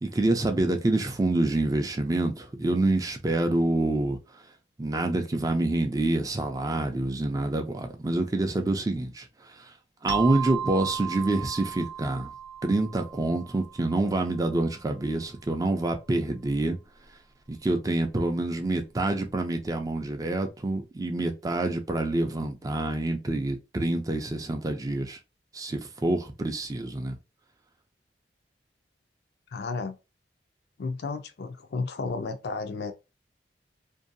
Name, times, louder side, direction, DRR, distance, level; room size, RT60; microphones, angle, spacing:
voice 1, 0.0-4.2 4.8-9.7 10.0-12.3 12.6-16.8 17.5-25.2 25.5-27.2, right 2 dB, 20° right, 0.4 m, -27 dB
sound 1, 10.1-14.5, right 8 dB, 70° right, 0.6 m, -35 dB
voice 2, 29.5-30.0 30.8-32.9, left 4 dB, 65° left, 0.4 m, -32 dB
2.6 x 2.2 x 2.5 m
head